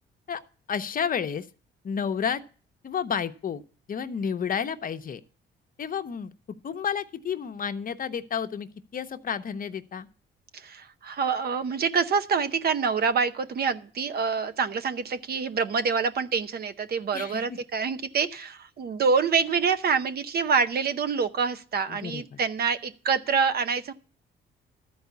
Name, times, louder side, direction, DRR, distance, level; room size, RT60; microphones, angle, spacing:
voice 1, 0.7-1.5 1.8-2.4 2.8-3.6 3.9-5.2 5.8-10.1 17.1-17.6 21.9-22.4, left 7 dB, 45° left, 0.8 m, -31 dB
voice 2, 10.5-23.9, right 5 dB, 50° right, 0.8 m, -26 dB
12.5 x 4.8 x 8.2 m
cardioid pair, 90°, 20 cm